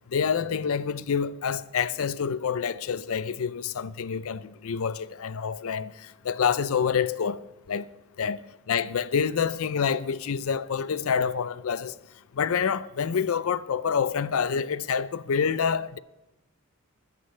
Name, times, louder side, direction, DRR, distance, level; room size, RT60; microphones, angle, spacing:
voice 1, 0.1-7.4 7.7-7.9 8.2-8.4 8.7-11.9 12.3-16.0, left 6 dB, 70° left, 0.5 m, -27 dB
22.0 x 8.4 x 3.3 m
head